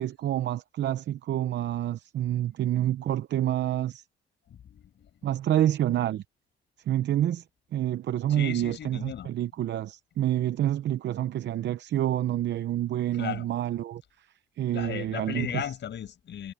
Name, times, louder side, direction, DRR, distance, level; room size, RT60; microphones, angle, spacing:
voice 1, 0.0-4.0 5.2-6.2 6.9-7.4 7.7-14.0 14.6-15.7, right 12 dB, 65° right, 0.7 m, -28 dB
voice 2, 4.5-5.3 8.3-9.3 13.1-13.5 14.7-16.5, left 9 dB, 65° left, 7.0 m, -36 dB
cardioid pair, 90°, 20 cm